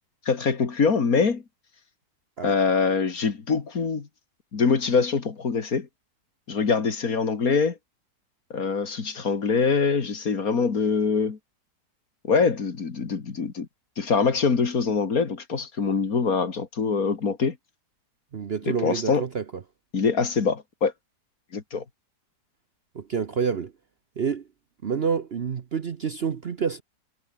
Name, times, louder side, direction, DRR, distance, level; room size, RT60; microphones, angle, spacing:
voice 1, 0.3-1.4 2.4-4.1 4.5-5.9 6.5-7.8 8.5-11.4 12.2-13.7 14.0-17.6 18.7-19.2 19.9-20.9 21.5-21.8, left 5 dB, 60° left, 2.6 m, -24 dB
voice 2, 18.3-19.4 22.9-23.7 24.2-24.4 24.8-26.8, right 6 dB, 45° right, 0.9 m, -28 dB
omnidirectional pair, 1.8 m